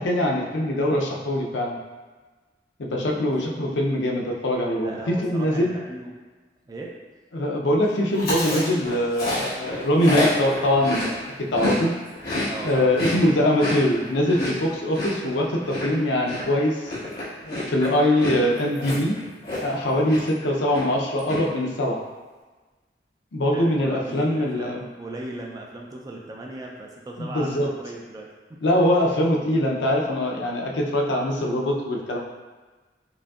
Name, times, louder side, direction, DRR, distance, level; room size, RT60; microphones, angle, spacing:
voice 1, 0.0-1.8 2.8-5.7 7.3-11.9 12.6-16.9 17.4-19.1 19.6-22.0 23.3-24.8 27.2-27.7 28.6-32.2, left 1 dB, 80° left, 0 dB, 0.6 m, -23 dB
voice 2, 2.9-3.2 4.8-6.1 6.7-6.9 12.5-12.9 19.8-20.1 23.5-28.6, right 2 dB, 20° right, -1 dB, 0.3 m, -38 dB
Chewing mastication, 8.1-11.8 12.1-19.8 20.1-20.4 20.7-21.4, left 1 dB, 55° left, 1.4 m, -29 dB
5.0 x 2.6 x 2.3 m, 1.3 s
head